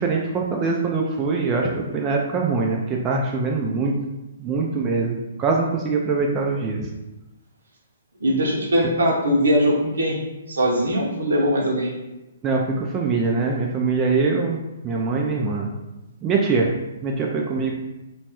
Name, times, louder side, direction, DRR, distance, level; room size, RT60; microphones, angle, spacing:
voice 1, 0.0-3.9 4.4-6.9 12.4-14.6 14.8-15.7 16.2-16.7 17.0-17.7, right 4 dB, 25° right, -1 dB, 0.3 m, -23 dB
voice 2, 8.2-10.2 10.5-11.9, equal, 75° right, -1 dB, 0.8 m, -21 dB
3.0 x 2.2 x 2.9 m, 1.0 s
hypercardioid pair, 130°, 0 cm